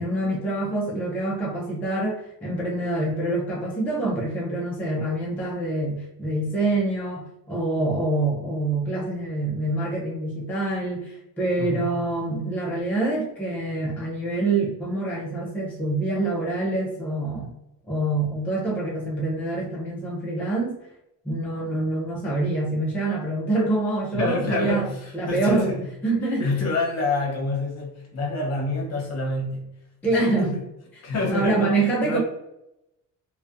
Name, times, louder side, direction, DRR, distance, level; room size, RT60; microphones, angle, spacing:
voice 1, 0.0-17.5 17.9-20.7 21.2-24.9 25.1-25.7 26.0-26.4 30.0-30.5 31.3-32.2, right 2 dB, 5° left, -5 dB, 0.4 m, -26 dB
voice 2, 11.6-12.0 24.1-25.9 26.2-30.7 31.0-31.8 32.0-32.2, left 2 dB, 50° left, -1 dB, 0.8 m, -27 dB
2.3 x 2.2 x 2.5 m, 0.87 s
cardioid pair, 150°, 33 cm